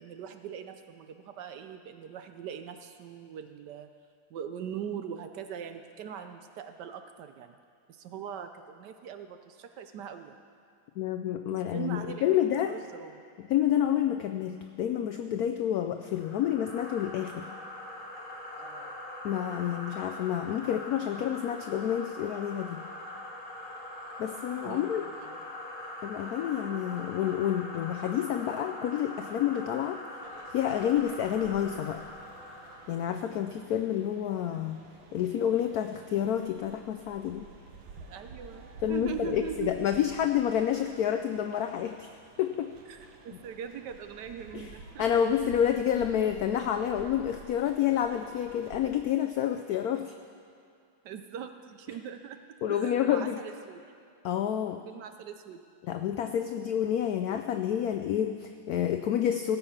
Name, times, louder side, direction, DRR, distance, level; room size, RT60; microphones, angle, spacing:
voice 1, 0.0-3.9 4.3-7.6 7.9-10.4 11.5-13.2 18.6-19.0 24.7-25.5 38.1-39.7 42.9-45.2 51.0-52.4 52.7-53.8 54.9-55.6, right 8 dB, 70° right, 8 dB, 1.1 m, -41 dB
voice 2, 11.0-12.7 13.5-17.5 19.2-22.8 24.2-25.0 26.0-30.0 30.5-32.0 32.9-34.8 35.1-37.4 38.8-42.1 42.4-42.7 44.5-44.7 45.0-50.1 52.6-53.4 54.2-54.8 55.8-59.6, left 10 dB, 90° left, 7 dB, 0.8 m, -29 dB
sound 1, 16.1-33.1, left 1 dB, 30° left, 1.3 m, -42 dB
sound 2, 30.2-48.9, right 4 dB, 85° right, 1.8 m, -51 dB
17.5 x 7.0 x 5.6 m, 2.3 s
omnidirectional pair, 2.2 m